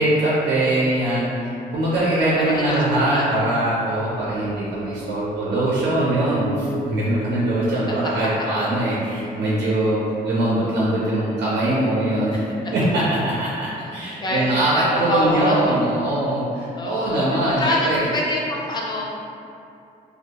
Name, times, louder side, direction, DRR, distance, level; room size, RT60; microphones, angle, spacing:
voice 1, 0.0-12.4 12.7-18.1, right 1 dB, 85° right, -8 dB, 0.5 m, -22 dB
voice 2, 2.4-2.8 3.1-3.3 8.2-8.3 13.8-13.9 14.2-14.4 14.8-15.8 16.8-19.2, left 1 dB, 25° left, -3 dB, 0.4 m, -25 dB
sound 1, 4.1-14.7 15.0-15.2, right 1 dB, 55° left, 0.9 m, -37 dB
2.2 x 2.1 x 2.8 m, 2.6 s
wide cardioid pair, 160°, 17 cm